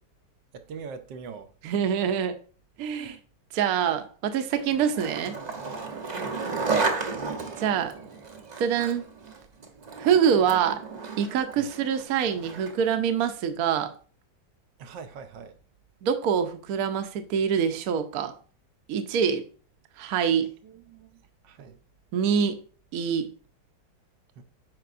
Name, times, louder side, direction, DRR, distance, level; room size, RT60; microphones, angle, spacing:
voice 1, 0.5-1.5 6.1-6.4 11.6-11.7 14.8-15.6 20.6-21.8 24.4-24.5, right 5 dB, 85° right, 1.4 m, -43 dB
voice 2, 1.6-2.3 2.8-3.2 3.5-5.3 7.6-7.9 8.6-9.1 10.0-10.8 11.2-13.9 16.0-18.3 18.9-19.4 20.0-20.5 22.1-22.6 22.9-23.3, right 7 dB, 65° right, 1.1 m, -25 dB
Skateboard, 4.6-12.9, right 4 dB, 40° right, 0.6 m, -33 dB
9.1 x 5.2 x 2.5 m
omnidirectional pair, 1.9 m